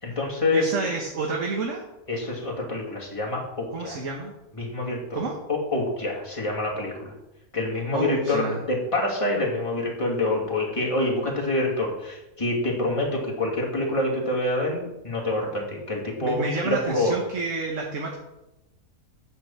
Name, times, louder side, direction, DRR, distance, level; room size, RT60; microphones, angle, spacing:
voice 1, 0.0-0.9 2.1-4.0 4.5-5.2 5.5-7.1 7.5-17.1, left 2 dB, 20° left, -3 dB, 2.5 m, -26 dB
voice 2, 0.5-1.8 3.7-4.3 5.1-5.3 7.9-8.6 16.2-18.2, right 3 dB, 60° right, 0 dB, 1.6 m, -29 dB
9.6 x 5.5 x 7.2 m, 0.94 s
omnidirectional pair, 1.5 m